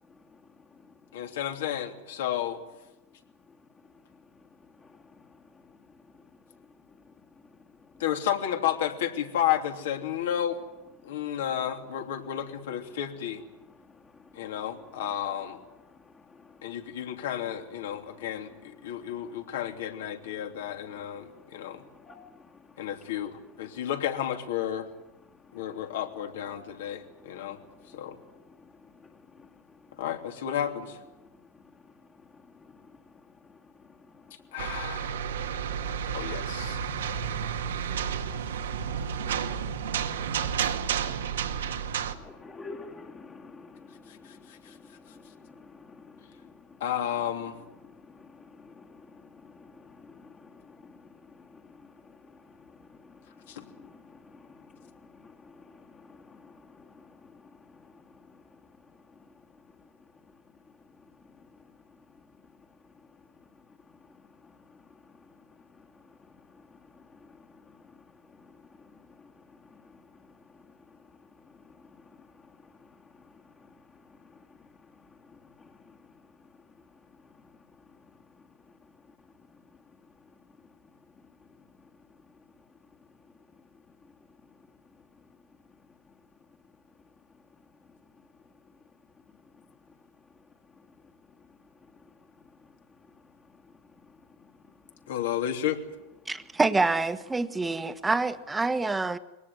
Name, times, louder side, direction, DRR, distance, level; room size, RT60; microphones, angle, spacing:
voice 1, 1.1-2.6 8.0-10.6 11.0-13.4 14.3-15.6 16.6-21.8 22.8-24.9 25.5-27.6 27.9-28.2 30.0-31.0 34.5-35.2 36.1-36.8 44.1-44.8 46.8-47.6 53.5-53.6 95.1-95.8, left 10 dB, 70° left, 3.1 m, -32 dB
voice 2, 4.8-5.1 14.0-14.4 16.0-16.8 18.9-19.1 21.3-22.6 25.5-25.6 27.2-28.6 29.1-29.5 32.3-32.8 33.5-33.6 33.9-34.0 34.2-34.3 34.7-35.9 36.5-38.0 38.4-38.8 39.8-39.9 41.5-41.6 42.0-46.8 47.8-58.6 64.4-65.1 65.7-65.9 66.3-68.0 68.4-69.3 69.6-70.2 70.5-70.6 70.9-71.0 71.6-73.7 74.3-74.4 75.3-76.0, left 4 dB, 20° left, 1.9 m, -52 dB
sound 1, 34.6-42.1, right 7 dB, 80° right, 2.0 m, -31 dB
voice 3, 96.3-99.2, right 3 dB, 10° right, 1.4 m, -26 dB
22.5 x 18.5 x 9.4 m
hypercardioid pair, 100°, 0 cm